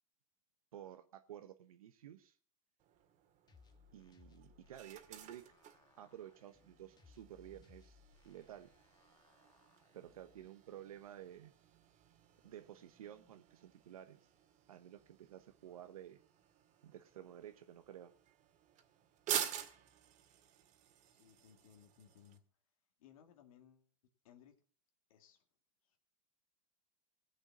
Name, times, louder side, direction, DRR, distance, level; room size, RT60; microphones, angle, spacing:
voice 1, 0.7-2.4 3.9-5.4 6.0-8.0 8.2-8.7 9.9-11.5 12.4-14.3 14.7-16.2 16.8-18.1, right 11 dB, 85° right, 1.0 m, -53 dB
sound 1, 2.8-22.4, right 10 dB, 45° right, 2.1 m, -49 dB
sound 2, 3.5-10.5, left 5 dB, 25° left, 1.7 m, -66 dB
voice 2, 21.2-22.4 23.0-23.9 24.2-24.5 25.1-25.4 25.9-26.0, left 9 dB, 75° left, 2.2 m, -62 dB
17.0 x 7.8 x 6.0 m
hypercardioid pair, 110°, 18 cm